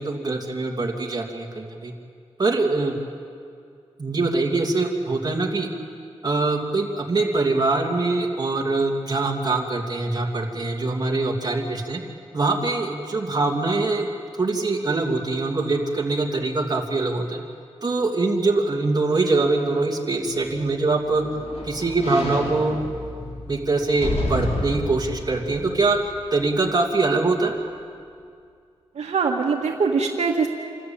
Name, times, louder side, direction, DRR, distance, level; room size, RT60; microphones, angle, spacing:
voice 1, 0.0-1.9 2.4-3.0 4.0-5.7 6.2-12.0 12.3-14.1 14.3-17.4 17.8-21.2 21.6-22.8 23.5-26.0 26.3-27.5, right 3 dB, 35° right, 1 dB, 2.7 m, -23 dB
sound 1, 20.3-26.6 27.1-27.2, left 1 dB, 65° left, 3.9 m, -32 dB
voice 2, 28.9-30.5, right 5 dB, 80° right, -3 dB, 1.7 m, -22 dB
27.0 x 13.5 x 8.9 m, 2.3 s
wide cardioid pair, 95°, 11 cm